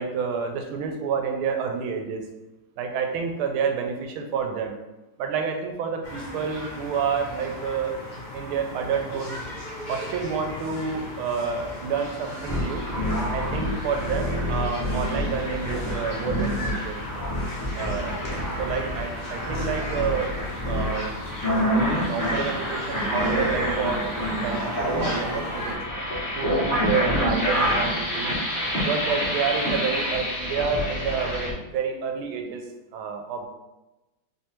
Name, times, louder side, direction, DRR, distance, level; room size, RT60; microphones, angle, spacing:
voice 1, 0.0-2.2 2.8-4.8 5.2-8.0 8.3-9.4 9.9-12.9 13.3-17.0 17.7-18.2 18.6-20.3 20.6-21.1 21.7-25.8 26.4-28.4 28.8-32.6 32.9-33.5, right 6 dB, 85° right, 4 dB, 1.5 m, -29 dB
sound 1, 6.0-25.7, left 1 dB, 85° left, 0.4 m, -36 dB
sound 2, 12.5-31.5, equal, 15° left, 0.8 m, -27 dB
3.5 x 3.2 x 4.3 m, 1.0 s
omnidirectional pair, 2.3 m